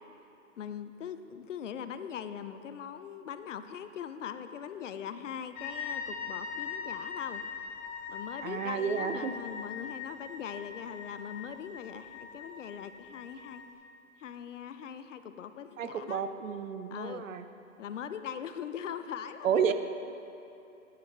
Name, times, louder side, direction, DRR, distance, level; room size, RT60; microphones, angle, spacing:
voice 1, 0.6-7.4 8.1-13.6 14.2-16.2 16.9-17.3 17.8-19.7, left 8 dB, 65° left, 11 dB, 0.6 m, -41 dB
sound 1, 5.6-13.7, left 6 dB, 20° left, 0.9 m, -41 dB
voice 2, 8.4-9.4 15.8-17.5 19.4-19.7, right 7 dB, 70° right, 10 dB, 0.7 m, -31 dB
10.0 x 9.2 x 3.3 m, 2.9 s
hypercardioid pair, 130°, 41 cm